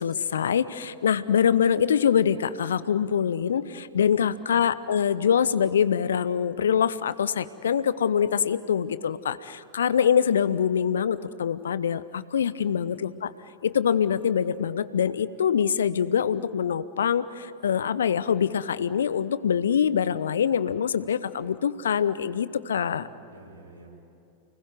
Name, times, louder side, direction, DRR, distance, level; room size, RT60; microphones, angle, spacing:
voice 1, 0.0-13.3 13.6-23.1, left 8 dB, 65° left, 16 dB, 0.8 m, -24 dB
voice 2, 22.9-24.0, right 2 dB, 75° right, 0 dB, 5.6 m, -50 dB
29.5 x 20.5 x 9.4 m, 2.8 s
figure-of-eight pair, 90°, 0 cm